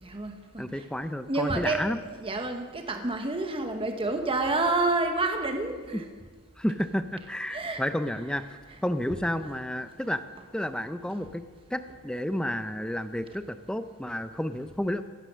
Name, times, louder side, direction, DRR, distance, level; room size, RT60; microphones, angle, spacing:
voice 1, 0.0-0.9 1.3-6.0 7.5-7.8 8.3-8.8 10.4-10.5, right 2 dB, 25° right, 5 dB, 1.2 m, -29 dB
voice 2, 0.6-2.0 5.9-6.0 6.6-8.5 8.8-10.2 10.5-11.4 11.7-15.0, left 1 dB, 5° left, 10 dB, 0.5 m, -31 dB
16.5 x 12.5 x 6.3 m, 1.4 s
head